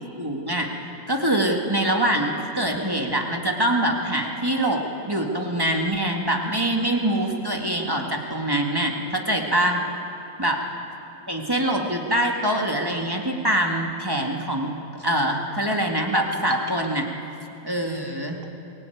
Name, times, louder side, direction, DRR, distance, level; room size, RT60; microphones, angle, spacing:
voice 1, 0.2-0.7 1.1-4.8 5.1-9.8 10.4-10.6 11.3-14.7 15.0-17.1 17.6-18.6, right 1 dB, 10° right, 1 dB, 1.8 m, -24 dB
23.0 x 17.5 x 9.3 m, 2.8 s
omnidirectional pair, 2.3 m